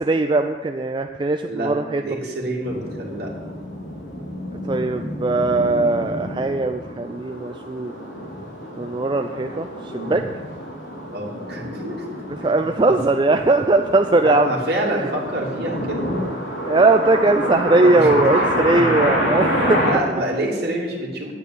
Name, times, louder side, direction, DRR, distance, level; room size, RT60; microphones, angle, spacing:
voice 1, 0.0-2.0 4.7-7.9 8.8-10.2 12.4-14.5 15.0-15.1 16.7-19.8, right 2 dB, 25° right, 6 dB, 0.4 m, -19 dB
voice 2, 1.4-3.3 10.0-10.2 11.1-12.0 12.8-13.0 14.2-16.1 17.8-18.2 18.7-19.0 19.7-21.3, right 1 dB, 55° right, -3 dB, 2.9 m, -27 dB
sound 1, 2.6-19.9, equal, 70° left, 3.8 m, -27 dB
9.2 x 8.9 x 8.3 m, 1.4 s
head